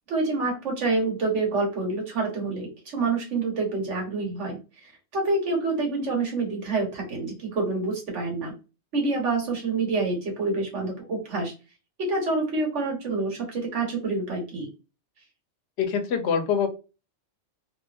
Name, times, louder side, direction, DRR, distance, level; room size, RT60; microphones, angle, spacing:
voice 1, 0.1-8.5 8.9-11.5 12.1-14.7, right 3 dB, 75° right, 1 dB, 1.3 m, -27 dB
voice 2, 15.8-16.7, left 6 dB, 65° left, 6 dB, 0.8 m, -24 dB
2.8 x 2.4 x 2.3 m, 0.30 s
omnidirectional pair, 1.3 m